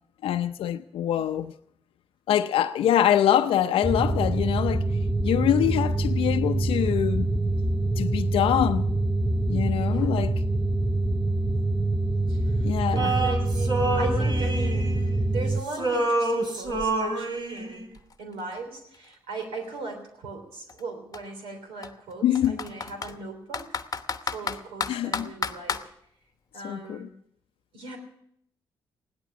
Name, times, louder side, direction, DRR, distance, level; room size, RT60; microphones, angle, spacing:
voice 1, 0.2-1.5 2.3-4.8 5.2-7.3 8.0-8.9 9.5-10.4 12.6-13.1 22.2-22.6 24.9-25.3 26.6-27.1, left 10 dB, 75° left, 0.6 m, -24 dB
sound 1, 3.8-15.6, right 2 dB, ahead, 0.8 m, -25 dB
voice 2, 12.3-17.9 18.2-23.8 24.2-25.9 26.5-27.1 27.7-28.0, right 3 dB, 85° right, 3.3 m, -38 dB
Male singing, 13.0-15.4 15.7-17.8, right 2 dB, 55° right, 2.8 m, -28 dB
Computer keyboard, 17.6-17.7 17.9-19.9 20.7-20.8 21.1-21.2 21.8-23.1 23.5-25.9, left 5 dB, 40° left, 1.0 m, -32 dB
16.5 x 11.5 x 6.0 m
supercardioid pair, 60°, 9 cm